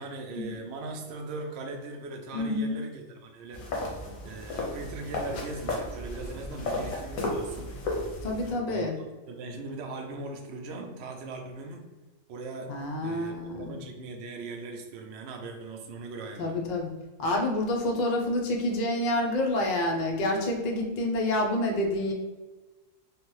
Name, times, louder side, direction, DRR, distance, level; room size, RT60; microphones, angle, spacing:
voice 1, 0.0-3.6 4.2-7.7 8.6-8.9 9.3-11.8 12.3-12.8 13.0-16.5, right 3 dB, 65° right, 2 dB, 0.7 m, -39 dB
voice 2, 2.3-2.8 8.2-9.0 12.7-13.8 16.4-16.9 17.2-22.1, left 1 dB, 60° left, 0 dB, 0.4 m, -28 dB
sound 1, 3.5-8.5, left 2 dB, 85° left, 1.2 m, -34 dB
3.2 x 2.1 x 3.1 m, 1.2 s
omnidirectional pair, 1.4 m